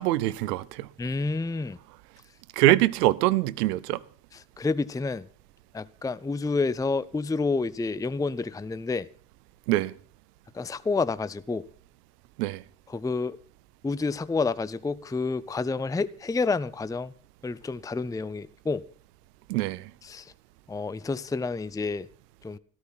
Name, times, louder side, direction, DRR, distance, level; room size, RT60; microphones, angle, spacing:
voice 1, 0.0-0.9 2.6-4.0 9.7-9.9 12.4-12.6 19.5-19.9, right 16 dB, 80° right, 0.7 m, -24 dB
voice 2, 1.0-1.8 4.6-5.3 5.7-9.1 10.5-11.6 12.9-13.4 13.8-17.1 17.4-18.8 20.0-20.2 20.7-22.1 22.4-22.6, left 3 dB, 10° left, 0.6 m, -29 dB
13.5 x 13.0 x 5.7 m
hypercardioid pair, 45°, 47 cm